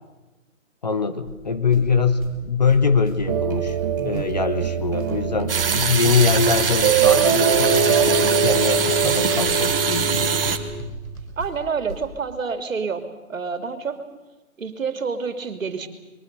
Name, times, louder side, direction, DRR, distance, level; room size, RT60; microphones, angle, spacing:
voice 1, 0.8-3.8 4.0-10.4, left 5 dB, 30° left, 11 dB, 0.9 m, -23 dB
sound 1, 1.2-12.1, right 2 dB, ahead, 0.9 m, -38 dB
sound 2, 3.3-10.6, right 6 dB, 15° right, 1.3 m, -23 dB
sound 3, 5.5-10.6, right 6 dB, 40° right, 1.7 m, -23 dB
voice 2, 11.4-13.0 13.3-14.0 14.6-15.9, right 5 dB, 70° right, 9 dB, 2.9 m, -28 dB
25.0 x 22.0 x 6.8 m, 1.1 s
hypercardioid pair, 175°, 41 cm